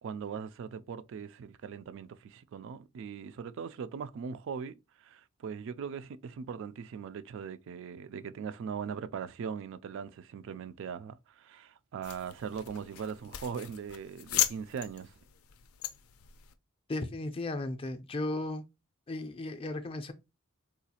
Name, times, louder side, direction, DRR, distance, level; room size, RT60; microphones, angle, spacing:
voice 1, 0.0-15.1, right 6 dB, 65° right, 0.3 m, -40 dB
sound 1, 12.0-16.5, left 13 dB, 90° left, 0.4 m, -37 dB
voice 2, 16.9-18.6 19.1-20.1, left 2 dB, 25° left, 0.4 m, -35 dB
3.9 x 2.4 x 2.7 m
head